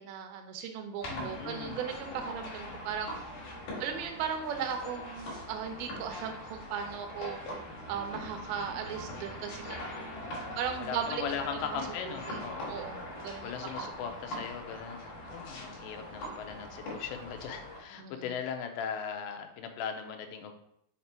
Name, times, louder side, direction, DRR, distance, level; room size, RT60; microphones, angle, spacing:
voice 1, 0.0-3.3 3.8-7.4 7.9-9.8 10.6-11.2 11.7-11.8 12.1-12.4 12.7-13.5 18.0-18.1, right 7 dB, 85° right, 5 dB, 3.0 m, -37 dB
sound 1, 1.0-17.8, equal, 60° left, 3.8 m, -42 dB
voice 2, 1.1-1.8 3.7-4.0 10.2-12.7 13.4-20.5, left 7 dB, 85° left, 5 dB, 2.9 m, -39 dB
7.2 x 3.4 x 4.3 m, 0.74 s
omnidirectional pair, 5.0 m